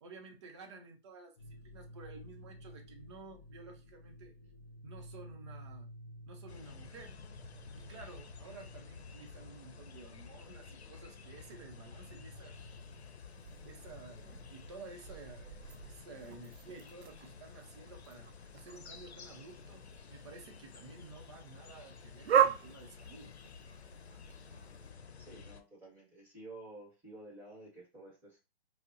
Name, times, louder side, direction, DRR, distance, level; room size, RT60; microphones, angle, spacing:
voice 1, 0.0-4.4 4.8-5.9 6.3-7.2 7.7-12.5 13.6-19.8 20.1-23.3, right 3 dB, 30° right, 0.7 m, -52 dB
sound 1, 1.4-19.6, equal, 25° left, 1.7 m, -55 dB
sound 2, 6.5-25.6, left 5 dB, 80° left, 0.7 m, -52 dB
sound 3, 12.5-24.9, right 9 dB, 80° right, 0.5 m, -38 dB
voice 2, 25.2-28.4, right 2 dB, 5° right, 1.1 m, -51 dB
5.1 x 2.1 x 2.7 m
hypercardioid pair, 150°, 32 cm